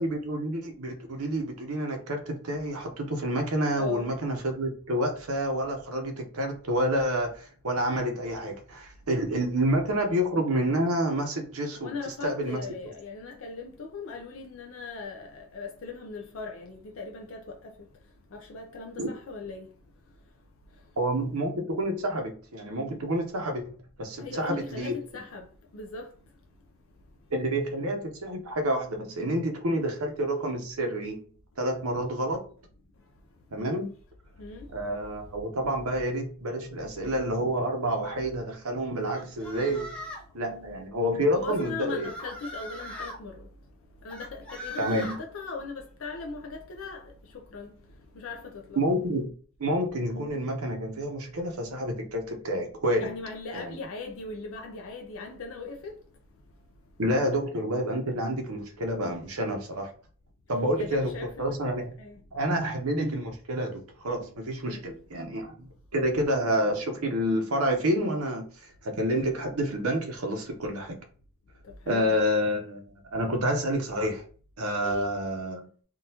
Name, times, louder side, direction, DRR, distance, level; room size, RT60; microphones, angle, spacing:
voice 1, 0.0-11.9 12.2-12.6 19.0-19.1 21.0-24.9 27.3-31.2 31.6-32.4 33.5-33.9 34.7-39.9 40.3-42.1 44.8-45.1 48.8-49.3 49.6-53.2 53.5-53.8 57.0-59.9 60.5-61.8 62.3-71.0 71.9-72.8 73.1-74.2 74.6-75.7, equal, 85° right, 0.9 m, -28 dB
voice 2, 3.8-4.2 11.8-17.6 18.3-19.7 24.2-25.5 25.7-26.1 34.4-34.7 41.3-43.4 44.0-47.1 47.5-47.7 48.2-48.8 53.0-55.9 60.8-62.2 64.6-64.8 71.9-72.2 74.8-75.1, left 4 dB, 65° left, 0.5 m, -39 dB
sound 1, 39.1-40.3 41.5-43.2 44.1-45.2, equal, 5° left, 0.6 m, -40 dB
3.7 x 2.4 x 2.8 m
head